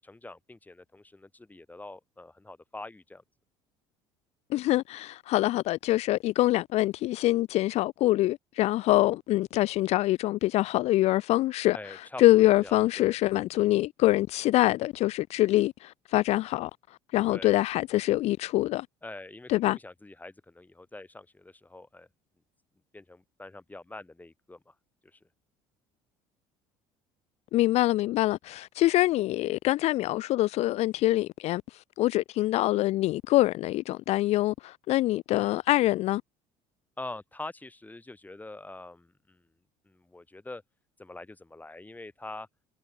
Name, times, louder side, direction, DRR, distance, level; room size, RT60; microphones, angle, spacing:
voice 1, 0.0-3.2 11.7-12.2 12.6-13.2 17.3-17.6 19.0-22.1 22.9-24.7 25.0-25.2 35.3-35.9 37.0-39.5 39.8-40.6 41.0-42.5, left 2 dB, 15° left, 6.1 m, -44 dB
voice 2, 4.5-16.7 17.1-18.9 19.5-19.8 27.5-36.2, left 16 dB, 60° left, 0.4 m, -25 dB
supercardioid pair, 80°, 13 cm